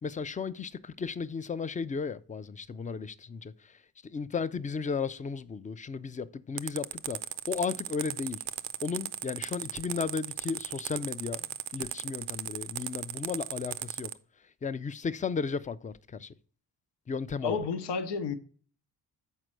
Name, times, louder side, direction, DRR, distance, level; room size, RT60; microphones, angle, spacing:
voice 1, 0.0-3.8 4.1-7.2 7.5-8.4 8.8-11.5 11.7-14.1 14.6-16.3 17.1-17.6, left 5 dB, 20° left, 0.4 m, -34 dB
sound 1, 6.6-14.1, right 13 dB, 85° right, 0.6 m, -36 dB
voice 2, 17.4-18.3, left 5 dB, 75° left, 0.8 m, -31 dB
6.5 x 4.4 x 6.1 m
cardioid pair, 65°, 42 cm